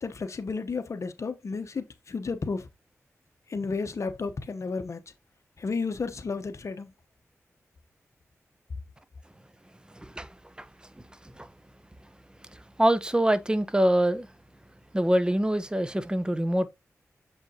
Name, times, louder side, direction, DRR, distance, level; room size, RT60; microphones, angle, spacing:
voice 1, 0.0-2.7 3.5-5.0 5.6-6.9, left 4 dB, 60° left, 1.0 m, -32 dB
voice 2, 12.8-14.3 14.9-16.7, right 1 dB, 15° right, 0.9 m, -24 dB
7.3 x 5.3 x 2.8 m
cardioid pair, 50°, 6 cm